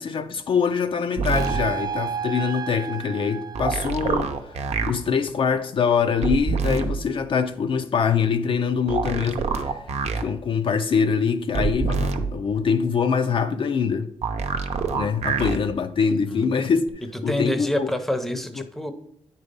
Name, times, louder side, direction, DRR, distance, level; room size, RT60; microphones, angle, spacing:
voice 1, 0.0-9.8 10.2-14.1 14.9-16.9 17.2-17.9, left 6 dB, 55° left, 0.4 m, -24 dB
sound 1, 1.2-1.6 3.5-4.9 6.2-6.9 8.9-10.2 11.5-12.2 14.2-15.6 16.9-17.0, right 5 dB, 80° right, 0.7 m, -25 dB
sound 2, 1.3-4.5, right 7 dB, 35° right, 0.3 m, -32 dB
voice 2, 17.3-18.9, left 1 dB, 5° left, 0.6 m, -27 dB
9.4 x 4.1 x 5.1 m
wide cardioid pair, 145°, 11 cm